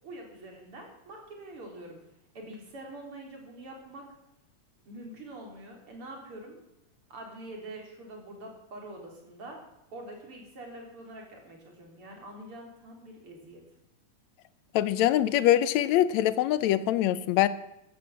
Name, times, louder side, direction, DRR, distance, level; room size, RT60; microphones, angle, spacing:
voice 1, 0.0-2.0 2.3-4.1 4.9-6.6 7.1-9.6 9.9-13.6, right 1 dB, 45° right, 1 dB, 4.6 m, -45 dB
voice 2, 14.7-17.5, left 12 dB, 75° left, 15 dB, 2.0 m, -23 dB
15.5 x 11.5 x 7.3 m, 0.85 s
omnidirectional pair, 3.4 m